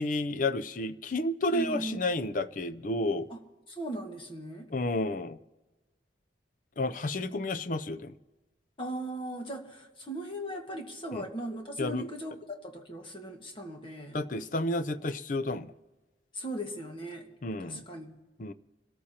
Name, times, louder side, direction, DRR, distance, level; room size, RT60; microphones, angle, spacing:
voice 1, 0.0-3.3 4.7-5.4 6.8-8.1 11.1-11.2 11.8-12.1 14.1-15.7 17.4-17.8 18.4-18.5, left 2 dB, 45° left, 12 dB, 0.5 m, -31 dB
voice 2, 1.5-2.0 3.3-3.4 3.7-4.7 8.8-14.2 16.3-17.3 17.6-18.1, right 1 dB, 30° left, 2 dB, 1.6 m, -38 dB
26.0 x 13.5 x 2.9 m, 1.1 s
head